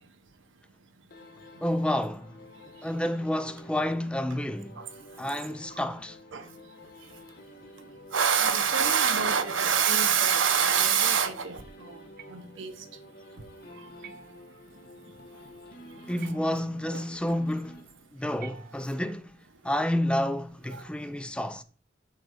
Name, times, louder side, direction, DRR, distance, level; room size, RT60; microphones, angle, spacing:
sound 1, 1.1-18.3, left 1 dB, 50° left, 1.3 m, -50 dB
voice 1, 1.6-2.4 2.8-4.8 5.2-6.2 16.1-17.8 18.1-19.4 19.6-21.6, left 1 dB, 5° left, 0.4 m, -30 dB
voice 2, 8.1-11.6 11.8-12.0 12.3-12.7 16.4-16.6 16.9-17.0, right 7 dB, 80° right, 1.0 m, -25 dB
sound 2, 12.2-12.7 14.0-14.9 16.2-16.9 18.4-19.3, right 7 dB, 50° right, 0.6 m, -50 dB
8.2 x 3.8 x 6.4 m
head